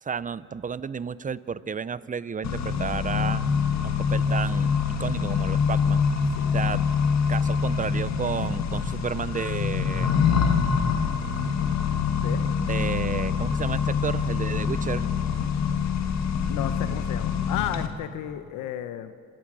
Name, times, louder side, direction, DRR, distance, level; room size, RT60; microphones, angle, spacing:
voice 1, 0.0-3.4 3.8-4.7 5.0-6.0 6.5-6.9 7.3-10.2 12.7-15.1, right 6 dB, 25° right, 17 dB, 0.6 m, -32 dB
Accelerating revving vroom, 2.4-17.9, left 6 dB, 65° left, 1.7 m, -25 dB
voice 2, 16.4-19.1, left 11 dB, 85° left, 10 dB, 0.8 m, -33 dB
26.5 x 17.0 x 6.2 m, 2.4 s
cardioid pair, 90°, 30 cm